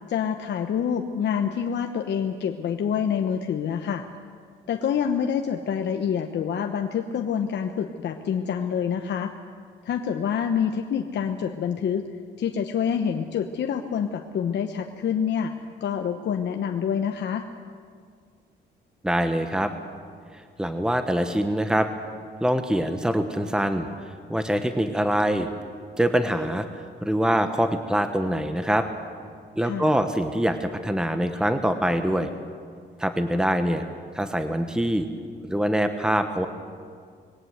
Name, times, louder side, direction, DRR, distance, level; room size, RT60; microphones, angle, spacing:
voice 1, 0.1-4.0 4.7-9.3 9.8-12.1 12.4-17.5 29.6-30.0, left 7 dB, 60° left, 5 dB, 1.1 m, -27 dB
voice 2, 19.0-19.7 20.3-21.9 22.4-25.5 26.0-28.9 29.6-32.3 33.0-33.8 34.1-35.1 35.5-36.5, right 1 dB, 5° right, 8 dB, 1.2 m, -24 dB
21.0 x 17.5 x 8.1 m, 2.1 s
cardioid pair, 90°, 20 cm